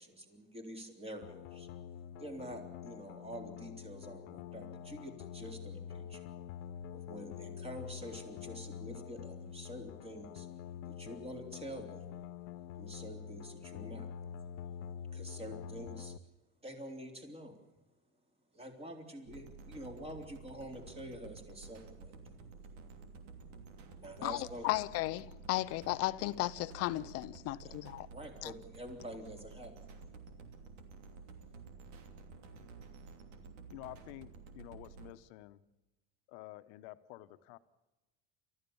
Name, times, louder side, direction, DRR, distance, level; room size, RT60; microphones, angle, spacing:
voice 1, 0.0-1.7 2.2-6.3 6.9-10.5 10.9-12.2 12.8-14.1 14.6-14.8 15.1-16.2 16.6-17.6 18.5-22.3 24.0-24.7 27.6-27.7 28.1-29.7, equal, 15° right, 3.6 m, -47 dB
sound 1, 1.2-16.2, left 8 dB, 90° left, 1.0 m, -46 dB
sound 2, 19.3-35.1, right 4 dB, 85° right, 3.0 m, -52 dB
voice 2, 24.2-28.1 28.4-28.5, left 18 dB, 40° left, 0.7 m, -35 dB
voice 3, 33.7-35.6 36.3-37.6, left 17 dB, 60° left, 1.2 m, -50 dB
29.5 x 14.0 x 7.2 m
cardioid pair, 155°, 36 cm